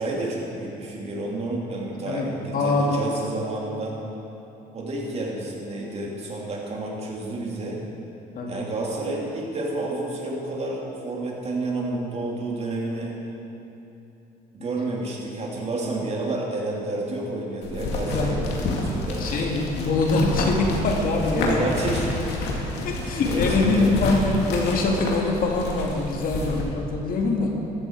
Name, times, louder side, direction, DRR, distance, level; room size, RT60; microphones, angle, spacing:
voice 1, 0.0-4.0 4.7-7.8 8.5-13.2 14.5-19.6 21.3-22.3 22.9-24.0 26.4-26.5, right 2 dB, 40° right, -2 dB, 3.0 m, -30 dB
voice 2, 2.5-3.0 8.4-8.6 18.1-18.4 19.2-21.7 22.8-27.6, left 3 dB, 55° left, 0 dB, 2.1 m, -24 dB
sound 1, 17.6-26.6, left 2 dB, 80° left, 2.3 m, -29 dB
14.0 x 13.5 x 4.7 m, 2.9 s
cardioid pair, 110°, 17 cm